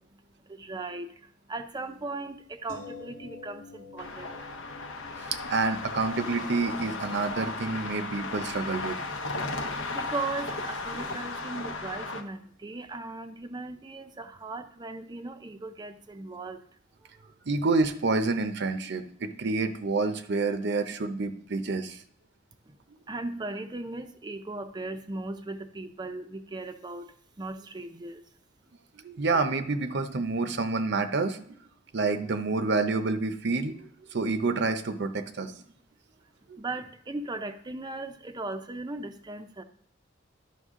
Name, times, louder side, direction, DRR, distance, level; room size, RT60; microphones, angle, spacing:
voice 1, 0.2-4.4 9.6-16.6 17.2-17.3 22.7-22.8 23.1-28.2 36.6-39.6, right 2 dB, 20° right, 8 dB, 0.5 m, -38 dB
sound 1, 2.7-12.6 12.9-13.0, left 3 dB, 45° left, 1.0 m, -51 dB
sound 2, 4.0-12.2, left 3 dB, 75° left, 0.9 m, -35 dB
voice 2, 5.5-9.0 17.5-22.0 29.0-31.4 31.9-35.6 36.5-36.6, right 3 dB, 60° right, 9 dB, 0.7 m, -28 dB
11.0 x 5.9 x 3.6 m, 0.62 s
head